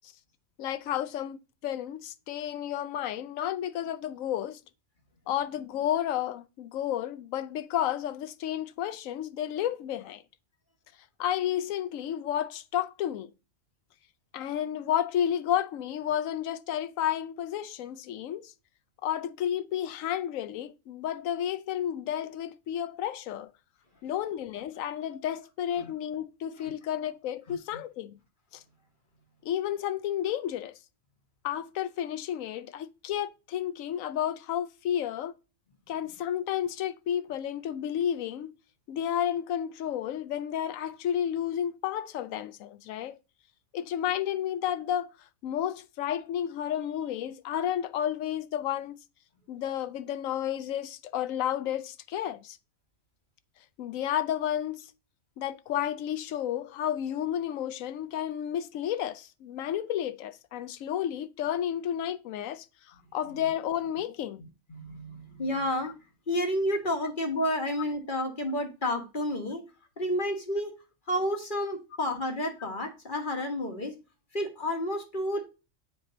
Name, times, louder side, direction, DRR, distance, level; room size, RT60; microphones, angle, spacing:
voice 1, 0.6-4.6 5.3-10.2 11.2-13.3 14.3-18.5 19.0-23.5 24.0-28.2 28.5-28.6 29.4-30.8 31.4-35.3 35.9-38.5 38.9-43.2 43.7-45.1 45.4-49.0 49.5-52.6 53.8-54.9 55.4-64.4, left 10 dB, 75° left, 1.0 m, -31 dB
voice 2, 27.5-27.8 64.7-65.9 66.3-69.6 70.0-70.7 71.1-73.9 74.3-75.4, left 1 dB, 40° left, 1.5 m, -30 dB
7.8 x 4.7 x 3.8 m
omnidirectional pair, 1.4 m